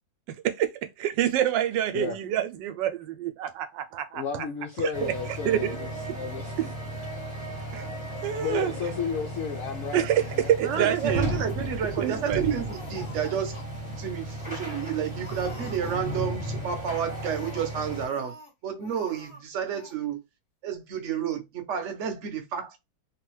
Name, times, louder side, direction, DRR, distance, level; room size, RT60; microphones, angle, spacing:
voice 1, 1.0-4.5 4.8-5.1 5.4-5.9 6.6-6.7 7.7-7.9 8.2-8.7 9.9-11.4 12.0-12.6, right 11 dB, 80° right, 1.2 m, -27 dB
voice 2, 4.1-6.5 8.4-10.9, left 6 dB, 90° left, 0.7 m, -33 dB
sound 1, 4.9-18.1, right 1 dB, 5° right, 0.8 m, -35 dB
voice 3, 10.6-13.6 14.0-18.4 18.6-20.2 20.6-22.8, right 8 dB, 55° right, 0.9 m, -31 dB
Laughter, 11.0-12.3 12.6-13.6 14.0-14.1 14.4-14.8 15.2-16.5 17.0-18.5 18.8-19.4 19.7-20.0, left 2 dB, 25° left, 0.7 m, -48 dB
3.3 x 2.3 x 3.0 m
omnidirectional pair, 2.0 m